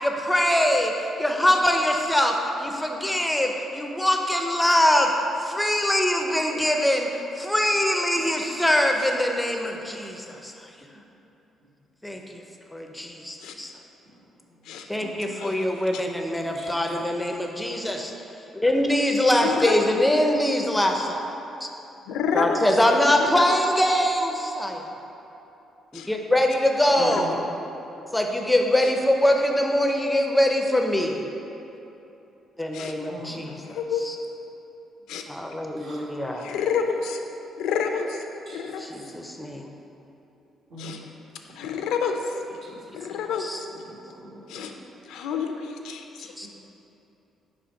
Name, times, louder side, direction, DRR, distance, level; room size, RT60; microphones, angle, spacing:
voice 1, 0.0-5.1 5.4-7.1 7.4-10.5 12.0-12.4 12.7-13.7 14.9-18.1 18.5-21.3 21.6-21.7 22.3-24.9 25.9-27.4 28.1-31.3 32.6-33.8 34.0-34.2 35.3-36.5 38.8-39.7 43.4-43.6 46.2-46.5, left 1 dB, 5° left, 3 dB, 0.5 m, -23 dB
voice 2, 15.3-16.0 19.4-19.8 22.1-22.6 23.2-23.6 25.9-26.1 26.9-27.2 28.8-28.9 32.7-32.9 33.5-34.0 35.1-35.2 36.2-37.2 37.6-38.3 38.5-38.8 40.8-41.0 41.6-42.4 42.9-43.7 44.5-44.7 45.0-46.5, left 6 dB, 90° left, 5 dB, 0.4 m, -29 dB
voice 3, 16.3-16.9 27.0-27.3 33.1-33.5 35.8-36.1 38.5-38.6 40.7-41.0 41.6-41.7 42.6-42.8 43.9-44.7 46.4-46.5, right 1 dB, 55° right, -4 dB, 1.3 m, -42 dB
4.4 x 4.2 x 5.1 m, 3.0 s
cardioid pair, 90°, 0 cm